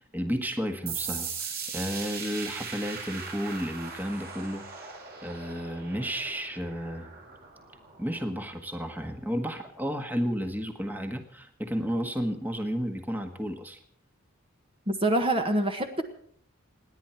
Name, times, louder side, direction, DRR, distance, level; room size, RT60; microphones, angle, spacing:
voice 1, 0.1-4.9 5.2-7.1 8.0-13.8, equal, 10° right, 5 dB, 1.6 m, -32 dB
sound 1, 0.9-8.2, right 5 dB, 45° right, 7.4 m, -39 dB
voice 2, 14.9-16.0, right 1 dB, 25° right, 5 dB, 1.6 m, -25 dB
28.5 x 10.5 x 4.6 m, 0.62 s
head